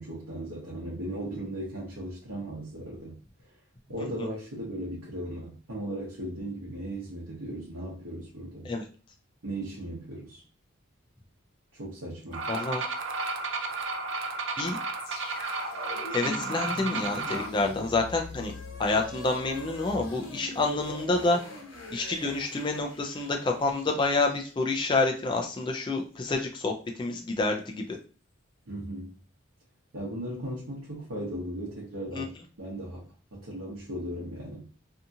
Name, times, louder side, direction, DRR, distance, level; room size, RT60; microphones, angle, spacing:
voice 1, 0.0-3.2 3.9-8.7 9.4-10.4 11.7-12.5 28.7-29.2 29.9-34.6, right 1 dB, 90° right, -5 dB, 0.9 m, -37 dB
sound 1, 12.3-17.5, right 3 dB, 60° right, 0.4 m, -33 dB
voice 2, 12.5-12.9 14.6-14.8 16.1-18.5 18.8-21.4 21.9-28.0 32.1-32.2, left 3 dB, 25° left, 2 dB, 0.3 m, -28 dB
sound 2, 15.0-25.2, left 2 dB, 70° left, 0.9 m, -42 dB
2.7 x 2.3 x 2.6 m, 0.39 s
head